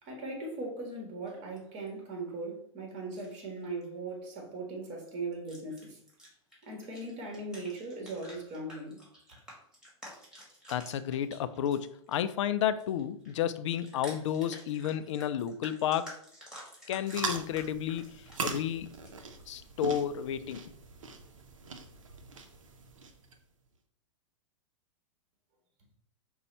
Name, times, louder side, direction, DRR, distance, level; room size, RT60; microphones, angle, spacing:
voice 1, 0.0-6.0 6.6-9.0, right 2 dB, 40° right, 1.7 m, -39 dB
sound 1, 1.3-1.9 3.0-3.4 3.6-3.9 4.3-4.5 5.3-12.3 12.6-19.7, equal, 5° right, 1.8 m, -51 dB
voice 2, 10.7-16.1 16.9-18.9 19.5-20.6, left 10 dB, 70° left, 0.4 m, -31 dB
sound 2, 17.0-23.4, right 4 dB, 85° right, 0.7 m, -41 dB
5.3 x 2.3 x 4.0 m
hypercardioid pair, 115°, 16 cm